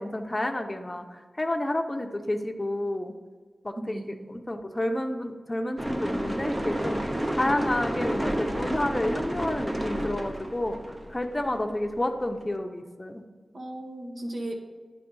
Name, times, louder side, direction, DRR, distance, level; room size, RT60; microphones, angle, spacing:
voice 1, 0.0-3.1 3.6-7.0 7.3-10.8 11.1-13.2, left 1 dB, 20° left, 4 dB, 0.7 m, -30 dB
voice 2, 3.7-4.4 13.5-14.6, right 1 dB, 60° right, 1 dB, 1.2 m, -36 dB
sound 1, 5.8-12.4, right 1 dB, 20° right, 0.6 m, -31 dB
9.9 x 3.5 x 5.4 m, 1.5 s
wide cardioid pair, 95°, 0 cm